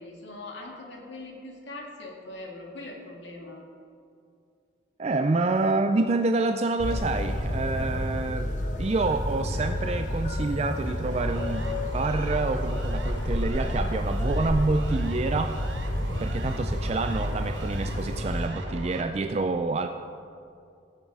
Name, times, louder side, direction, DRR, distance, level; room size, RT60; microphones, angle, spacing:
voice 1, 0.0-3.6 16.1-16.4, left 2 dB, 70° left, 0 dB, 2.0 m, -41 dB
voice 2, 5.0-8.5 8.8-15.6 16.2-19.9, right 3 dB, 35° right, 7 dB, 0.3 m, -27 dB
sound 1, 6.8-18.5, left 1 dB, 40° left, 1.0 m, -30 dB
Siren, 11.0-19.0, right 2 dB, 75° right, 1.1 m, -41 dB
16.0 x 7.2 x 4.8 m, 2.4 s
head